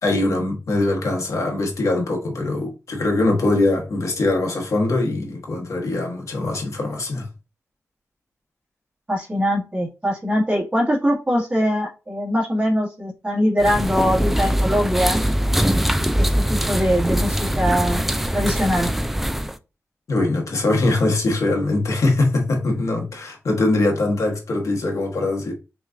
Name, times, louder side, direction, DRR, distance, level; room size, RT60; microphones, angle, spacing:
voice 1, 0.0-7.3 20.1-25.5, left 2 dB, 75° left, 1.2 m, -22 dB
voice 2, 9.1-15.2 16.1-18.0 18.3-18.9, equal, 25° right, 1.6 m, -22 dB
sound 1, 13.6-19.6, equal, 5° right, 0.3 m, -22 dB
5.9 x 2.4 x 2.5 m
wide cardioid pair, 95°, 5 cm